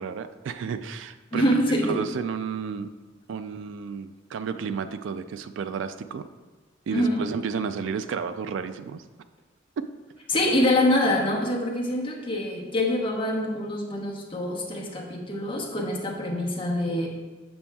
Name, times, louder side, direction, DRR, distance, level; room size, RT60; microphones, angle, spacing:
voice 1, 0.0-1.5 1.8-2.9 3.3-6.3 6.9-9.0 9.8-9.9, right 6 dB, 75° right, 11 dB, 0.3 m, -32 dB
voice 2, 1.3-2.0 6.9-7.2 10.3-17.1, left 1 dB, 30° left, -2 dB, 0.9 m, -25 dB
7.0 x 6.0 x 2.3 m, 1.2 s
head